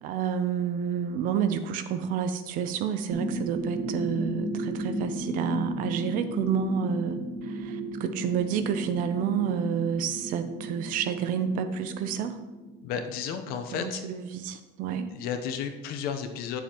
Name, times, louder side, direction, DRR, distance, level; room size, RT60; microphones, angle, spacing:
voice 1, 0.0-12.4 13.7-15.1, right 7 dB, 50° right, 10 dB, 0.5 m, -29 dB
sound 1, 3.1-13.5, right 1 dB, 30° right, 1.2 m, -34 dB
voice 2, 12.8-14.0 15.1-16.6, left 7 dB, 55° left, 6 dB, 0.8 m, -33 dB
8.6 x 7.1 x 3.0 m, 1.1 s
cardioid pair, 170°, 19 cm